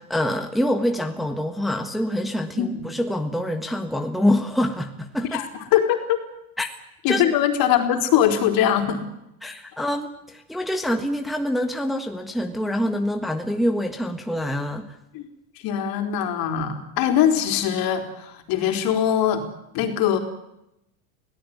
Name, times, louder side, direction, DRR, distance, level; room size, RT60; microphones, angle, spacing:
voice 1, 0.0-5.4 6.6-6.7 7.1-7.2 9.4-15.0, left 1 dB, ahead, 4 dB, 1.5 m, -25 dB
voice 2, 5.7-6.2 7.0-9.0 15.1-15.2 15.6-19.4 19.7-20.2, left 9 dB, 50° left, 6 dB, 4.1 m, -21 dB
23.5 x 17.5 x 9.6 m, 0.84 s
supercardioid pair, 120°, 44 cm